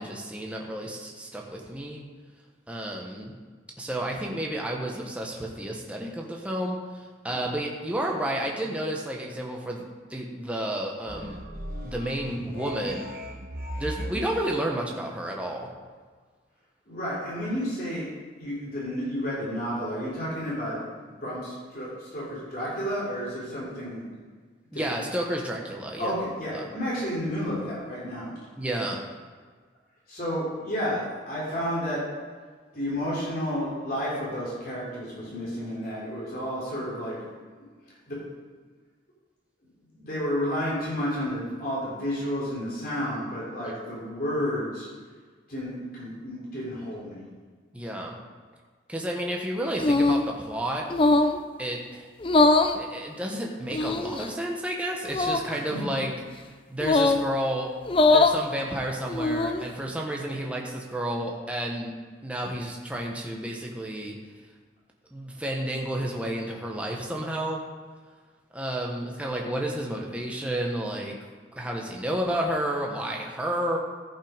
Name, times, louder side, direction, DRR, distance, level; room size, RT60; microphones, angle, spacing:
voice 1, 0.0-2.0 2.7-3.3 3.8-9.8 10.1-11.4 11.8-13.1 13.8-15.7 24.7-26.1 26.5-26.7 28.6-29.0 43.6-43.8 47.7-48.2 48.9-50.9 51.6-52.1 52.7-56.1 56.7-61.9 62.2-64.2 65.1-67.6 68.5-71.2 71.5-73.8, right 1 dB, 5° right, -1 dB, 1.1 m, -31 dB
sound 1, 11.1-14.4, equal, 50° right, 1.1 m, -37 dB
voice 2, 16.9-18.1 18.4-24.0 24.7-25.0 26.0-28.3 30.1-32.0 32.7-37.2 38.1-38.2 39.9-44.9 45.5-47.2 55.5-55.8, equal, 50° left, -7 dB, 3.5 m, -31 dB
sound 2, 49.8-50.3 50.9-51.4 52.2-52.8 53.7-54.3 55.1-55.5 56.8-57.3 57.9-58.4 59.1-59.7, left 2 dB, 30° left, 0.4 m, -21 dB
14.0 x 5.6 x 5.1 m, 1.5 s
head